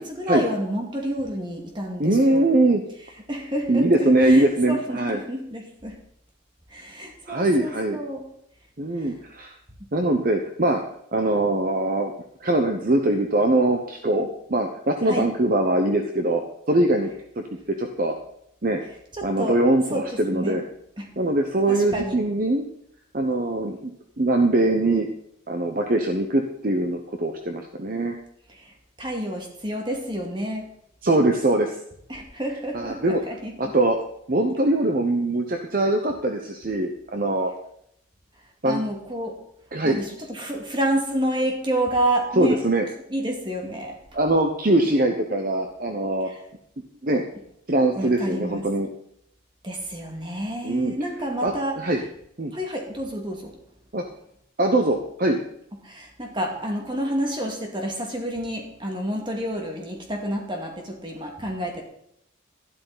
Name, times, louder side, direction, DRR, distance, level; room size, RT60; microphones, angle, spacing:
voice 1, 0.0-2.4 3.3-6.0 6.7-8.2 9.0-9.2 15.1-15.3 19.1-19.6 19.9-20.0 20.3-20.6 21.0-21.1 21.7-22.2 28.5-28.7 29.0-30.7 32.1-33.7 38.7-39.4 39.8-42.6 43.1-44.0 46.2-46.4 48.0-48.6 49.6-51.8 52.5-53.5 55.8-61.8, right 1 dB, 25° right, 1 dB, 2.1 m, -29 dB
voice 2, 2.0-2.8 3.7-5.2 7.3-8.0 8.8-9.5 9.9-10.8 11.1-12.1 12.4-16.4 16.7-17.1 17.7-18.1 18.6-18.8 19.2-20.6 21.2-22.7 23.1-23.9 24.2-25.1 25.5-28.1 31.0-31.8 32.7-33.2 33.6-34.0 34.3-37.5 38.6-38.8 39.7-40.0 42.4-42.8 44.1-46.3 47.0-47.2 47.7-48.9 50.6-50.9 51.4-52.0 52.4-52.5 53.9-54.0 54.6-55.4, right 1 dB, 45° right, 4 dB, 0.9 m, -22 dB
12.5 x 11.5 x 4.0 m, 0.73 s
head